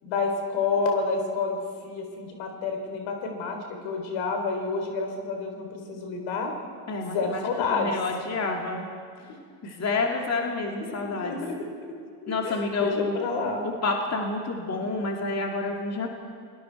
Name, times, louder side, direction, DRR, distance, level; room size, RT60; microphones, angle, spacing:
voice 1, 0.0-6.5 7.0-7.9 9.6-9.8 11.0-11.6 12.2-13.7, left 4 dB, 70° left, 4 dB, 3.9 m, -29 dB
voice 2, 6.9-7.4 7.7-8.9 9.6-11.3 12.3-13.3 13.6-16.1, left 3 dB, 30° left, 1 dB, 2.9 m, -29 dB
29.0 x 19.5 x 4.7 m, 2.2 s
hypercardioid pair, 75°, 48 cm